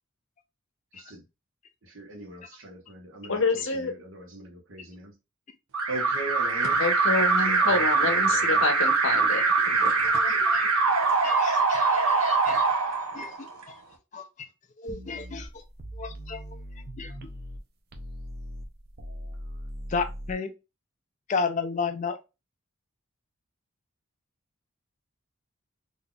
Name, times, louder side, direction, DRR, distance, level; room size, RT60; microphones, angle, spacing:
voice 1, 1.8-5.1 5.9-6.8 7.4-8.6, right 2 dB, 65° right, 1.1 m, -40 dB
voice 2, 3.3-3.9 6.8-9.9, left 3 dB, 60° left, 0.7 m, -28 dB
Alarm, 5.7-13.6, right 4 dB, 90° right, 0.8 m, -23 dB
voice 3, 9.3-9.7 10.0-10.7 11.2-12.7 13.1-13.8 14.1-14.5 14.8-15.6 15.9-17.3 19.9-20.5 21.3-22.2, left 5 dB, 35° left, 0.3 m, -34 dB
sound 1, 14.9-17.6 17.9-20.3, equal, 45° right, 0.6 m, -40 dB
3.9 x 2.7 x 2.3 m
head